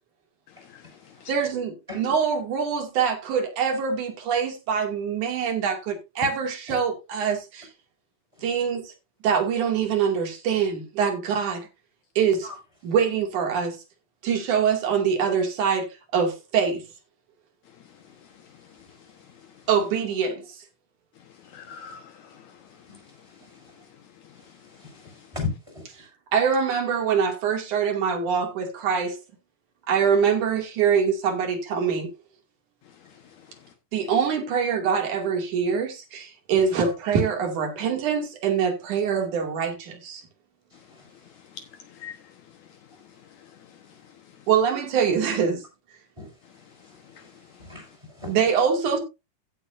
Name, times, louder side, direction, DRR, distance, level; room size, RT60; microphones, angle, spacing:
voice 1, 0.6-1.3 18.3-18.8 21.4-22.9 23.5-23.6 24.2-25.3 33.1-33.2 41.3-42.7 43.1-44.0 44.4-44.5 47.0-47.6, left 7 dB, 70° left, 2.5 m, -48 dB
voice 2, 1.3-7.7 8.4-8.9 9.2-11.7 12.2-12.5 12.8-13.8 14.2-15.9 16.1-16.8 19.7-20.6 26.3-29.2 29.9-32.1 33.9-40.2 44.5-45.6 48.3-49.0, right 6 dB, 75° right, 3.8 m, -24 dB
voice 3, 25.3-25.8 46.2-46.3 47.2-47.3 47.6-48.3, left 4 dB, 10° right, 5.9 m, -34 dB
15.5 x 7.9 x 2.6 m
omnidirectional pair, 3.6 m